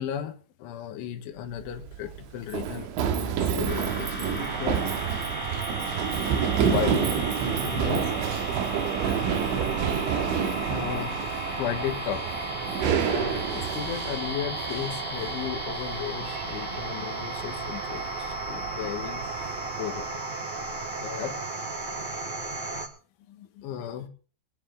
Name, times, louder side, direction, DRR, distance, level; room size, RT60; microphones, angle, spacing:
voice 1, 0.0-4.8 6.2-7.2 7.6-8.1 10.7-11.2 11.6-12.4 13.0-20.1 21.0-21.4 23.6-24.1, left 10 dB, 90° left, 3.9 m, -35 dB
Run, 1.5-20.1, right 8 dB, 85° right, 3.6 m, -30 dB
sound 1, 3.6-22.9, left 2 dB, 5° left, 1.3 m, -37 dB
sound 2, 4.4-22.9, right 7 dB, 65° right, 1.9 m, -36 dB
voice 2, 16.7-17.1 23.2-23.7, left 12 dB, 65° left, 2.4 m, -53 dB
23.0 x 9.8 x 3.6 m
omnidirectional pair, 5.3 m